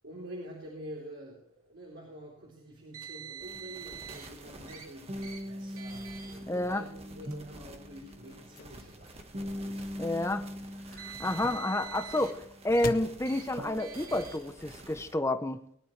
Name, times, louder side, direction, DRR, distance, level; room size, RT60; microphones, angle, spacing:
voice 1, 0.0-10.1, equal, 60° right, -3 dB, 3.8 m, -47 dB
Car, 2.9-4.3 4.7-4.9 5.2-5.4 5.8-6.3 7.2-7.4 8.3-8.4 10.7-12.3 12.7-12.9 13.3-13.4 13.8-14.4, right 8 dB, 85° right, 2.4 m, -45 dB
sound 1, 3.4-15.1, equal, 30° right, 1.4 m, -43 dB
voice 2, 6.5-6.8 10.0-10.4 11.0-12.4 12.6-15.6, left 1 dB, 15° left, 9 dB, 0.8 m, -30 dB
sound 2, 7.8-14.9, left 3 dB, 40° left, 0.7 m, -47 dB
21.0 x 11.5 x 3.3 m, 0.66 s
head